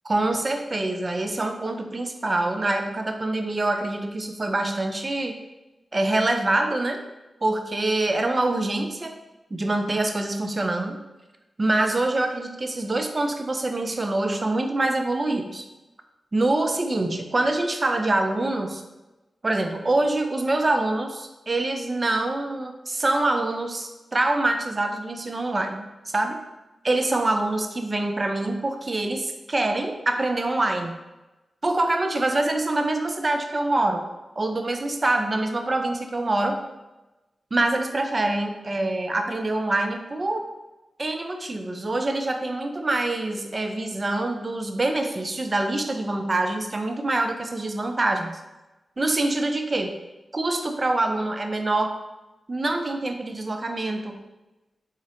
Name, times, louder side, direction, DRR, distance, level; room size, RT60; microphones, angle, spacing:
voice 1, 0.0-5.4 5.9-7.0 7.4-9.1 9.5-11.0 11.6-15.7 16.3-18.8 19.4-26.4 26.8-30.9 31.6-34.1 34.4-36.6 37.5-40.5 41.0-48.4 49.0-50.0 50.3-52.0 52.5-54.2, right 2 dB, 45° right, 5 dB, 0.4 m, -25 dB
4.1 x 2.5 x 2.8 m, 1.1 s
cardioid pair, 40°, 0 cm